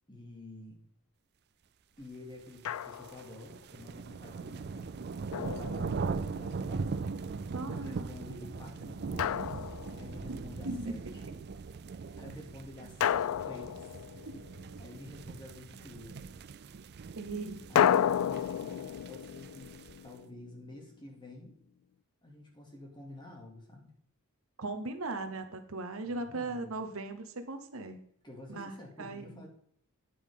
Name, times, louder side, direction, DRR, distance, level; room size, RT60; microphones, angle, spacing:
voice 1, 0.1-0.8 2.0-7.2 7.4-9.7 9.9-11.4 12.0-14.3 14.8-16.2 17.7-19.7 20.0-21.6 22.2-23.9 26.0-26.7 28.2-29.5, left 2 dB, 20° left, 0 dB, 2.5 m, -50 dB
Drum, 2.6-3.3 5.3-6.4 9.2-10.3 13.0-14.7 17.8-20.7, left 9 dB, 70° left, 0.3 m, -32 dB
sound 1, 2.6-20.1, right 4 dB, 50° right, 0.4 m, -40 dB
voice 2, 7.5-8.1 10.3-10.9 17.1-17.7 24.6-28.0 28.5-28.7 29.0-29.4, right 2 dB, 65° right, 8 dB, 1.0 m, -38 dB
9.5 x 8.7 x 3.7 m, 0.63 s
head